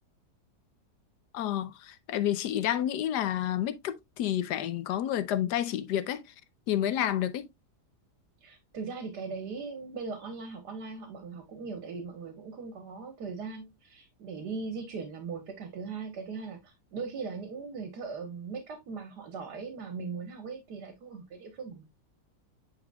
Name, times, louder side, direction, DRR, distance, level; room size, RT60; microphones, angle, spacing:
voice 1, 1.3-6.2 6.7-7.5, left 11 dB, 85° left, 1.3 m, -30 dB
voice 2, 8.4-21.8, right 4 dB, 80° right, 1.8 m, -39 dB
8.9 x 4.8 x 2.2 m
omnidirectional pair, 1.8 m